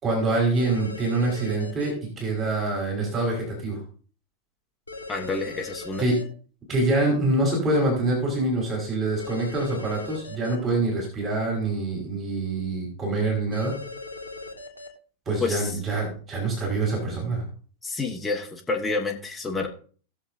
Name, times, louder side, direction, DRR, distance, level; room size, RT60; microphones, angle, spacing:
voice 1, 0.0-3.8 6.0-6.1 6.7-13.7 15.3-17.4, right 2 dB, 25° right, -1 dB, 4.1 m, -25 dB
sound 1, 0.6-1.9 4.9-6.2 9.2-10.6 13.5-14.9, left 2 dB, 80° left, 1.8 m, -39 dB
voice 2, 5.1-6.1 15.4-15.7 17.8-19.7, left 3 dB, 10° left, 0 dB, 1.5 m, -29 dB
18.0 x 7.1 x 2.6 m, 0.41 s
figure-of-eight pair, 90°, 0 cm